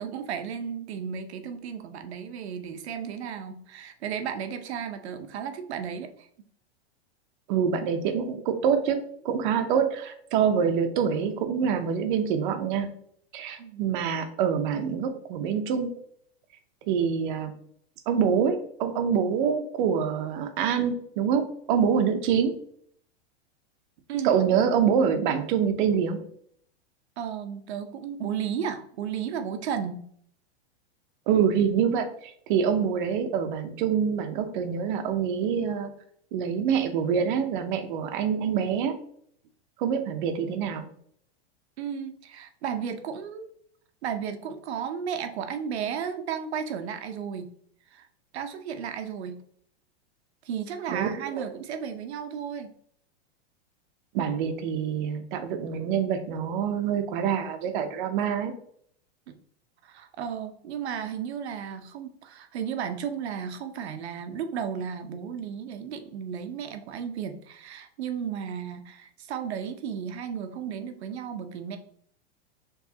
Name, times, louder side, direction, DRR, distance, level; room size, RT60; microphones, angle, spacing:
voice 1, 0.0-6.3 13.6-13.9 24.1-24.6 27.2-30.1 41.8-43.5 44.0-47.5 47.9-48.1 48.3-49.4 50.4-52.7 59.3-59.4 59.8-71.8, right 7 dB, 80° right, 7 dB, 0.7 m, -34 dB
voice 2, 7.5-12.9 13.3-15.9 16.9-17.5 18.1-22.5 24.2-26.2 31.3-35.9 36.3-39.0 39.8-40.9 50.9-51.1 51.4-51.5 54.1-58.5, right 7 dB, 50° right, 8 dB, 0.7 m, -25 dB
4.7 x 3.1 x 2.8 m, 0.64 s
supercardioid pair, 145°, 32 cm